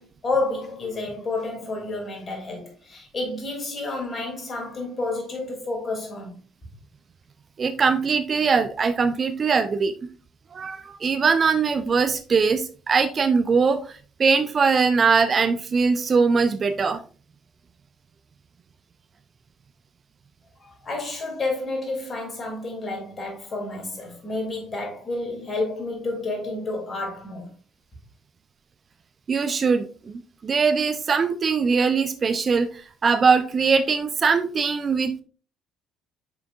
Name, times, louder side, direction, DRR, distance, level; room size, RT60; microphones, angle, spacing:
voice 1, 0.0-6.4 20.6-27.5, left 2 dB, 35° left, 2.7 m, -30 dB
voice 2, 7.6-10.0 10.5-13.9 14.2-17.0 29.3-35.2, right 5 dB, 35° right, 0.5 m, -21 dB
7.1 x 5.9 x 2.5 m
figure-of-eight pair, 50°, 0 cm